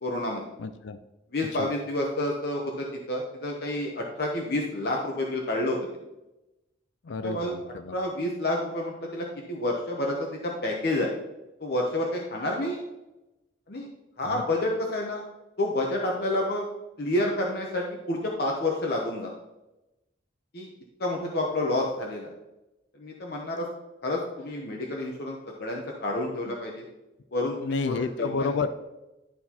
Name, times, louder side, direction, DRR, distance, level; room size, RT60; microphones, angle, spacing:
voice 1, 0.0-0.4 1.3-5.8 7.2-7.5 7.9-11.1 11.6-12.8 13.7-13.9 14.2-15.2 15.6-16.7 17.0-19.3 20.5-20.7 21.0-22.3 23.0-23.7 24.0-26.8 27.3-28.5, left 1 dB, 55° left, -1 dB, 0.8 m, -29 dB
voice 2, 0.6-1.0 1.6-1.7 7.1-7.9 14.3-14.4 27.6-28.7, left 4 dB, 80° left, 11 dB, 0.4 m, -30 dB
11.0 x 4.2 x 2.9 m, 0.98 s
head